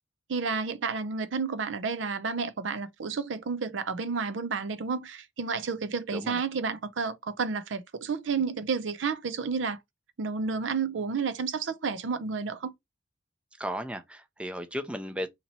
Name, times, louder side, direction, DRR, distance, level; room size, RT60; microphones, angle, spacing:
voice 1, 0.3-9.8 10.2-12.7, right 5 dB, 80° right, 0.5 m, -31 dB
voice 2, 13.6-15.3, equal, 5° right, 0.4 m, -35 dB
2.9 x 2.8 x 4.0 m
head